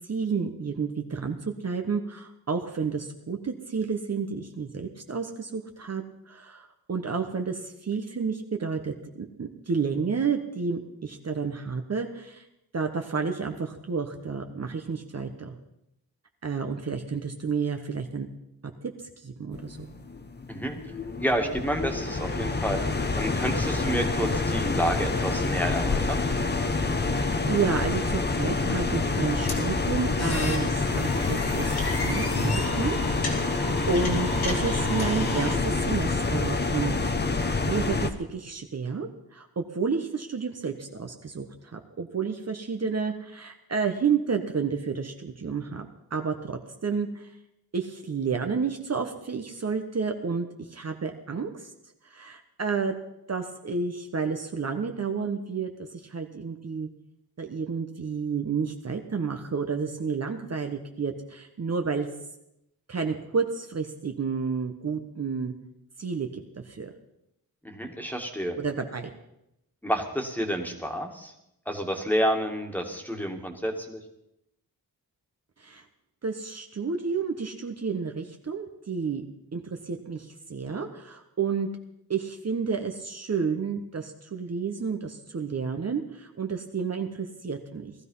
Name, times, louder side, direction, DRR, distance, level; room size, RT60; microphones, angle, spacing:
voice 1, 0.1-12.4 12.7-15.6 16.4-18.3 19.2-19.9 27.1-31.7 32.0-33.0 33.4-37.2 37.4-41.5 41.7-47.3 47.7-51.7 52.1-52.9 53.3-55.7 56.1-56.9 57.4-62.1 62.9-65.5 66.0-66.9 68.6-69.1 75.6-75.8 76.2-79.2 79.5-81.7 82.1-87.9, right 5 dB, 45° right, 4 dB, 1.2 m, -30 dB
sound 1, 19.5-38.1, left 3 dB, 25° left, 1.1 m, -27 dB
voice 2, 20.5-20.8 21.2-22.8 23.2-26.2 67.6-68.6 69.8-71.3 71.7-74.0, equal, 5° left, 3 dB, 2.1 m, -29 dB
sound 2, 29.5-35.5, left 2 dB, 80° left, 2.9 m, -34 dB
18.0 x 13.5 x 5.6 m, 0.83 s
wide cardioid pair, 125°, 37 cm